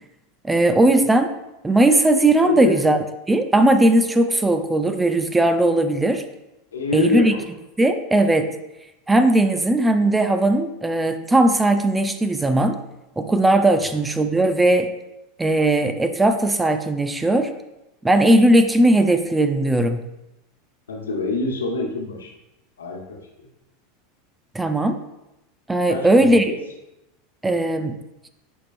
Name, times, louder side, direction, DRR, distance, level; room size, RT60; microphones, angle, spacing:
voice 1, 0.4-1.3 1.6-3.0 3.3-6.2 6.9-7.3 7.8-8.5 9.1-12.8 13.2-14.9 15.4-17.5 18.0-20.0 24.5-25.0 25.7-26.5 27.4-28.0, right 1 dB, 10° right, 8 dB, 0.6 m, -18 dB
voice 2, 2.4-2.7 6.7-7.5 13.7-13.9 20.9-22.3 22.8-23.2 25.9-26.6, left 3 dB, 85° left, -1 dB, 1.5 m, -26 dB
11.0 x 4.4 x 2.6 m, 0.94 s
hypercardioid pair, 90°, 0 cm